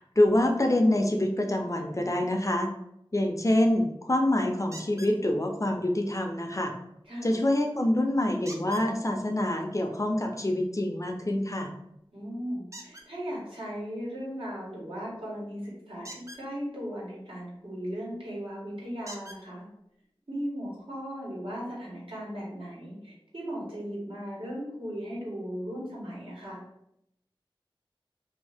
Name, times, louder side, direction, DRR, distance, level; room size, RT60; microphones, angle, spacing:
voice 1, 0.2-2.7 3.1-6.7 7.2-11.7, left 1 dB, 35° left, 3 dB, 0.5 m, -26 dB
sound 1, 4.7-5.2 8.5-8.9 12.7-13.1 16.0-16.4 18.1-18.2 19.1-19.4 20.4-20.5 21.0-21.1, right 1 dB, 35° right, 0.5 m, -44 dB
voice 2, 7.0-7.4 12.1-19.6 20.3-26.6, equal, 75° right, -6 dB, 1.4 m, -37 dB
2.7 x 2.6 x 3.3 m, 0.78 s
wide cardioid pair, 45°, 9 cm